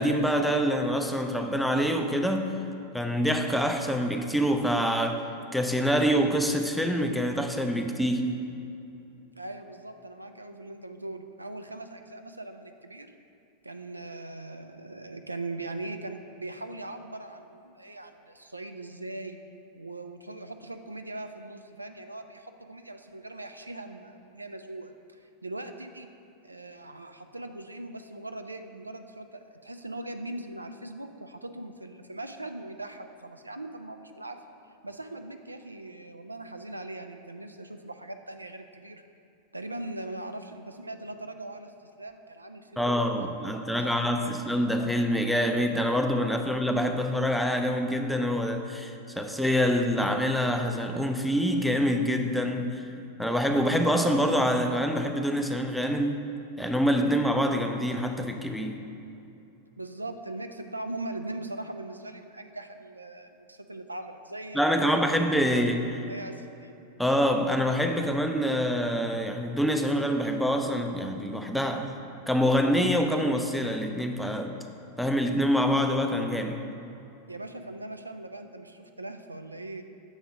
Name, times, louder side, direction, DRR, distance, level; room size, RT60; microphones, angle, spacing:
voice 1, 0.0-2.5 2.9-5.2 5.5-8.4 42.8-52.9 53.2-56.3 56.6-58.8 64.5-65.9 67.0-71.9 72.3-74.5 75.0-76.7, equal, ahead, 4 dB, 0.4 m, -26 dB
voice 2, 9.3-13.1 13.6-19.4 19.7-26.1 26.4-34.4 34.8-39.0 39.5-44.3 59.8-65.0 65.5-66.8 77.3-79.8, right 2 dB, 85° right, 7 dB, 0.3 m, -40 dB
7.0 x 3.5 x 6.0 m, 2.7 s
figure-of-eight pair, 90°, 0 cm